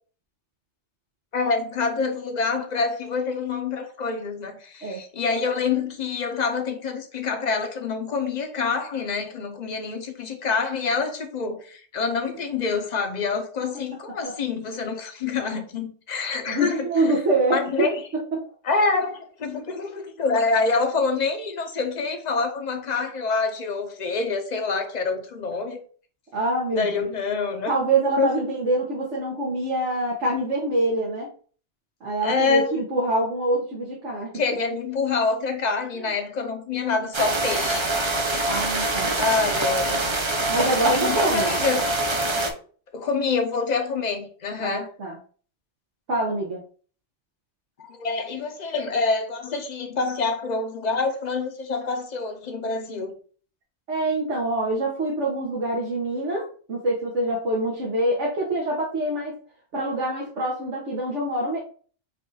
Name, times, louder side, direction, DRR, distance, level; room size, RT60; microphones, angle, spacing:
voice 1, 1.3-16.9 17.5-18.0 18.7-25.8 26.8-27.7 28.2-28.3 32.2-32.7 34.3-37.9 38.3-38.5 39.2-40.1 40.9-41.8 42.9-44.9 47.8-53.1, left 4 dB, 45° left, 6 dB, 0.8 m, -26 dB
voice 2, 16.2-18.8 26.3-27.1 27.7-31.3 32.0-34.3 36.0-36.1 38.4-39.2 40.5-41.5 44.6-45.2 46.1-46.6 53.9-59.4 59.7-61.6, right 1 dB, 90° right, -3 dB, 1.4 m, -25 dB
sound 1, 37.1-42.5, right 2 dB, 30° right, 0.6 m, -24 dB
5.3 x 2.5 x 3.9 m, 0.42 s
omnidirectional pair, 1.2 m